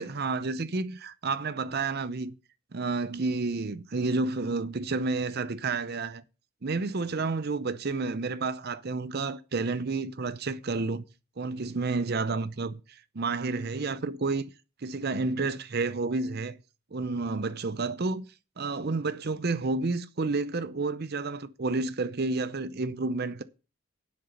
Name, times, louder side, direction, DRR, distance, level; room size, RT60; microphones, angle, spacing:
voice 1, 0.0-2.3 2.7-6.2 6.6-11.0 11.4-14.5 14.8-16.6 16.9-18.3 18.6-23.4, right 3 dB, 45° right, 0.6 m, -30 dB
9.8 x 7.8 x 5.7 m
head